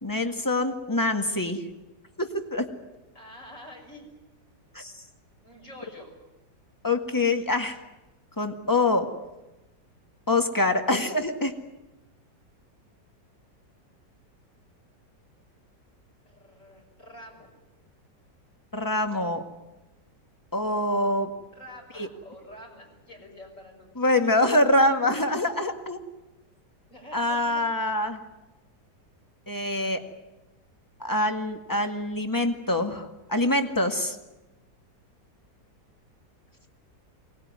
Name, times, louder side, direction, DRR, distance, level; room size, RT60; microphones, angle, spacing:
voice 1, 0.0-1.7 2.2-2.7 4.7-5.0 6.8-7.8 8.4-9.1 10.3-11.5 18.7-19.4 20.5-21.3 21.9-22.1 23.9-26.0 27.1-28.2 29.5-30.0 31.0-34.2, left 2 dB, 10° left, 6 dB, 1.7 m, -25 dB
voice 2, 3.1-4.1 5.4-6.2 16.2-17.6 19.1-19.4 21.5-24.8 26.9-27.6, left 1 dB, 45° left, 0 dB, 6.6 m, -47 dB
23.5 x 19.0 x 9.6 m, 1.0 s
omnidirectional pair, 1.9 m